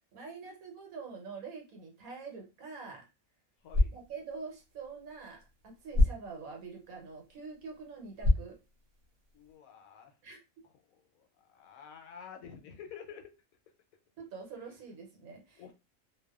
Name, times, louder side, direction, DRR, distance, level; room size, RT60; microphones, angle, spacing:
voice 1, 0.1-3.0 3.9-8.6 10.2-10.4 14.2-15.7, right 4 dB, 85° right, 0 dB, 1.3 m, -45 dB
sound 1, 3.5-9.6, left 2 dB, 55° right, 0.7 m, -33 dB
voice 2, 3.6-4.0 9.3-10.1 10.9-13.3 15.6-15.7, left 7 dB, 80° left, 5 dB, 1.0 m, -50 dB
2.6 x 2.2 x 2.2 m, 0.27 s
omnidirectional pair, 1.5 m